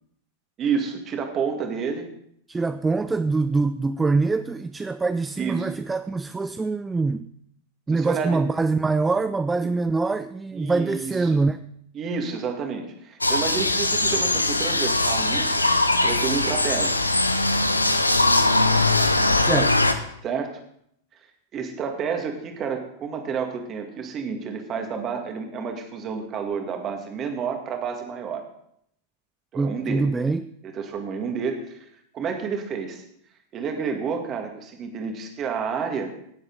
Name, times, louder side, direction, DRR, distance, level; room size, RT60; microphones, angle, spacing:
voice 1, 0.6-2.1 5.4-5.7 7.9-8.4 10.5-11.4 11.9-15.6 16.0-17.0 20.2-20.5 21.5-28.4 29.5-30.3 30.7-31.8 32.1-33.0 33.5-36.1, right 6 dB, 30° right, 4 dB, 2.1 m, -30 dB
voice 2, 2.5-7.3 7.9-11.6 19.4-19.8 29.6-30.5, right 3 dB, 10° right, 12 dB, 0.4 m, -24 dB
sound 1, 13.2-19.9, left 2 dB, 85° left, 0.8 m, -21 dB
17.0 x 7.8 x 3.9 m, 0.70 s
figure-of-eight pair, 90°, 0 cm